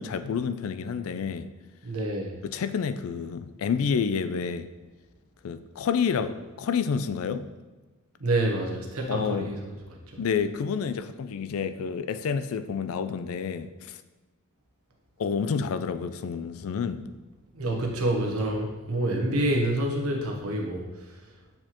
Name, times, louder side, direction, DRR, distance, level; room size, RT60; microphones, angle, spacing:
voice 1, 0.0-1.5 2.4-4.7 5.4-7.5 9.1-9.5 10.2-14.0 15.2-17.1, left 6 dB, 70° left, 10 dB, 0.4 m, -29 dB
voice 2, 1.8-2.4 8.2-10.2 17.5-21.2, right 1 dB, 85° right, 1 dB, 1.1 m, -28 dB
7.4 x 4.4 x 3.0 m, 1.2 s
head